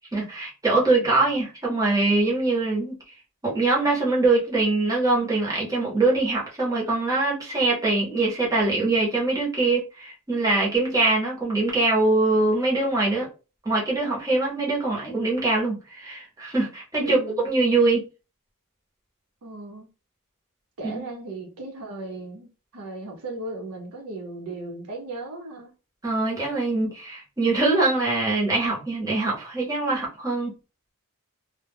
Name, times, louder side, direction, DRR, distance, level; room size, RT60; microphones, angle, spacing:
voice 1, 0.1-2.9 3.4-13.3 13.6-18.0 20.9-21.0 26.0-30.5, right 2 dB, 15° right, 0.8 m, -23 dB
voice 2, 17.0-17.5 19.4-19.9 20.8-25.7, right 2 dB, 80° right, 0.7 m, -36 dB
2.2 x 2.1 x 3.3 m
head